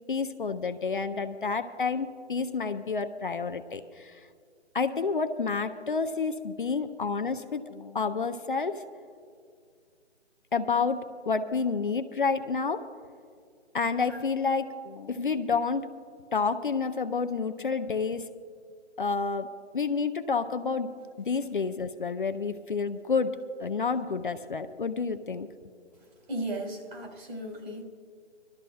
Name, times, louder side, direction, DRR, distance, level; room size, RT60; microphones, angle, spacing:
voice 1, 0.1-4.2 4.7-8.8 10.5-12.9 13.7-15.9 16.3-18.3 19.0-20.9 21.2-25.5, left 5 dB, 45° left, 8 dB, 0.4 m, -29 dB
voice 2, 26.3-27.8, right 1 dB, 55° right, 1 dB, 3.0 m, -36 dB
26.0 x 12.5 x 2.3 m, 2.1 s
hypercardioid pair, 160°, 35 cm